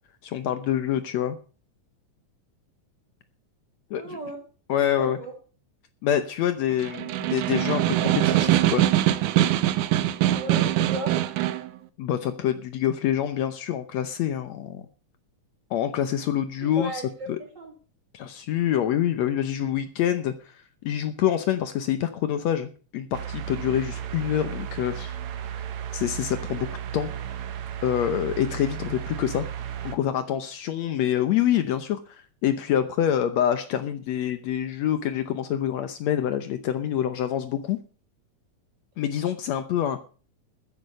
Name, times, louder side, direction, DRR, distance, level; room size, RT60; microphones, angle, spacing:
voice 1, 0.2-1.4 3.9-4.2 4.7-5.2 6.0-8.9 12.0-14.8 15.7-17.0 17.3-17.4 18.1-20.3 20.8-25.2 25.9-26.7 26.9-27.1 27.8-29.4 29.8-37.8 39.0-40.0, left 10 dB, 70° left, 10 dB, 2.0 m, -26 dB
voice 2, 3.9-4.4 5.0-5.3 10.3-11.2 16.6-17.7, right 2 dB, 35° right, 2 dB, 3.9 m, -36 dB
Snare drum, 6.7-11.7, right 13 dB, 85° right, 2.3 m, -23 dB
sound 1, 23.1-30.0, right 9 dB, 70° right, 2.4 m, -34 dB
13.5 x 10.5 x 5.5 m, 0.38 s
omnidirectional pair, 3.5 m